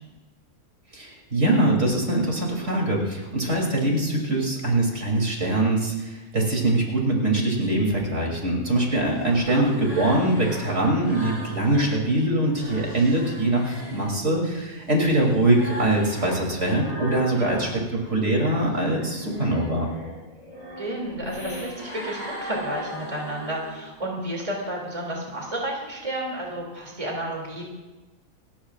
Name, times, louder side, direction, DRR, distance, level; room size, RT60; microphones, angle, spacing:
voice 1, 0.9-17.7 18.1-19.9, right 1 dB, 55° right, -1 dB, 3.5 m, -23 dB
sound 1, 9.0-12.0 12.4-17.7 18.1-24.0, equal, 30° left, 5.5 m, -38 dB
voice 2, 17.4-17.7 20.8-27.6, right 1 dB, 25° right, -1 dB, 2.8 m, -31 dB
28.5 x 14.5 x 2.5 m, 1.2 s
omnidirectional pair, 1.4 m